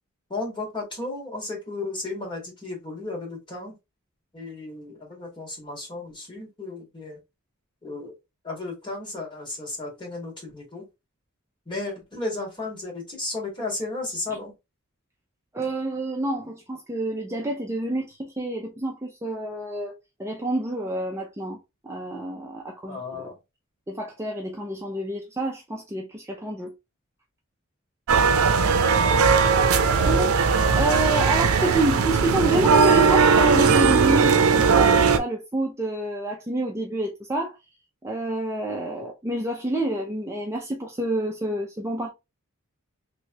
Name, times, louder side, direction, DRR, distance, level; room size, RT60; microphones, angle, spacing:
voice 1, 0.3-3.8 4.3-7.2 7.8-8.1 8.4-10.8 11.7-14.5 22.9-23.4 28.5-28.9 29.8-30.3 31.6-31.7 39.0-39.1, left 2 dB, 25° left, 1.7 m, -34 dB
voice 2, 15.5-19.9 20.2-21.6 21.8-23.3 23.9-26.7 30.1-30.3 30.8-37.6 38.0-42.1, right 1 dB, 15° right, 0.5 m, -28 dB
sound 1, 28.1-35.2, right 5 dB, 85° right, 0.5 m, -18 dB
3.1 x 3.1 x 2.7 m
head